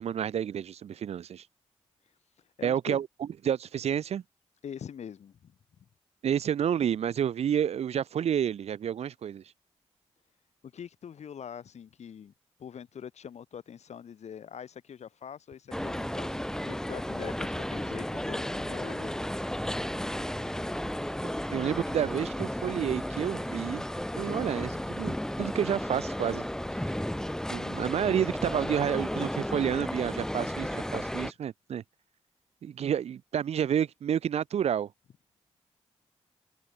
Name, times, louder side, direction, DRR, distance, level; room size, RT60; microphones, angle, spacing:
voice 1, 0.0-1.5 2.6-3.1 3.4-4.2 6.2-9.4 21.2-23.8 24.2-26.4 27.5-31.8 32.6-34.9, right 9 dB, 65° right, 0.4 m, -30 dB
voice 2, 2.6-3.0 4.6-5.6 10.6-12.3 12.6-16.4 16.7-19.2 24.7-25.0, left 8 dB, 75° left, 2.1 m, -43 dB
sound 1, 15.7-31.3, left 1 dB, 5° left, 0.7 m, -33 dB
open air
supercardioid pair, 45°, 12 cm